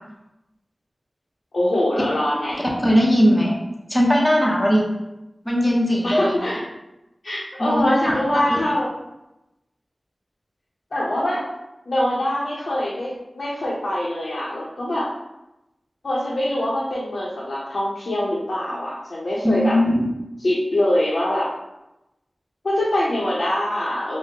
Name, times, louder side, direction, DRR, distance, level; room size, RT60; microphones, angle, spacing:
voice 1, 1.5-2.6 6.0-6.6 7.2-8.9 10.9-11.4 11.9-15.1 16.0-19.8 20.4-21.5 22.6-24.2, left 1 dB, 80° left, -7 dB, 0.6 m, -23 dB
voice 2, 2.8-3.5 3.9-4.8 5.4-6.3 7.6-8.1 19.4-20.1, equal, 10° left, -3 dB, 0.6 m, -18 dB
3.7 x 2.0 x 2.8 m, 0.93 s
wide cardioid pair, 50°, 0 cm